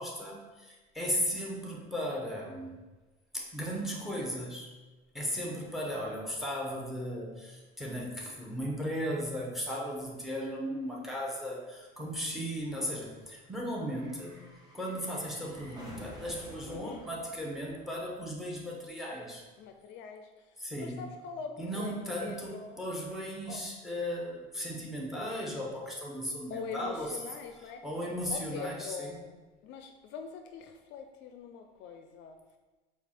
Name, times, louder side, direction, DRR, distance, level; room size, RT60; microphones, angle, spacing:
voice 1, 0.0-2.8 3.3-4.7 5.1-14.5 14.7-19.4 20.6-21.1 21.6-27.2 27.8-29.2, equal, ahead, -2 dB, 1.0 m, -36 dB
sound 1, 8.4-18.5 18.8-18.9, equal, 20° right, 1.4 m, -53 dB
voice 2, 16.7-17.0 19.6-22.8 23.5-23.6 26.5-27.8 28.3-29.3 29.6-32.4, left 6 dB, 65° left, 6 dB, 0.4 m, -43 dB
4.4 x 2.4 x 4.2 m, 1.2 s
supercardioid pair, 105°, 20 cm